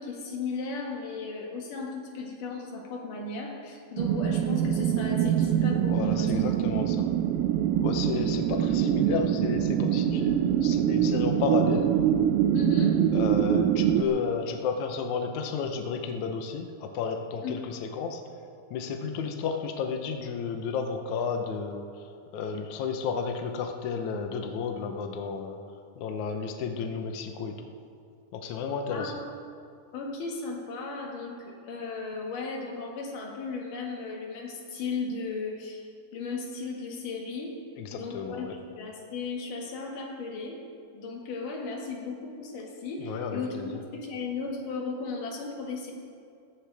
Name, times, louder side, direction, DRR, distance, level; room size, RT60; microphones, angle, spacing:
voice 1, 0.0-6.7 12.5-12.9 17.4-17.7 28.9-29.3 29.9-35.9 36.1-37.6 37.9-40.6 40.9-45.9, left 4 dB, 55° left, -1 dB, 3.1 m, -36 dB
sound 1, 4.0-14.0, right 10 dB, 80° right, 2.2 m, -24 dB
voice 2, 5.9-7.0 7.8-11.9 13.1-18.2 18.7-22.0 22.3-25.6 26.0-27.6 28.3-29.1 37.8-38.5 43.0-43.8, left 5 dB, 85° left, 4 dB, 1.6 m, -32 dB
18.5 x 15.0 x 3.5 m, 2.3 s
omnidirectional pair, 4.8 m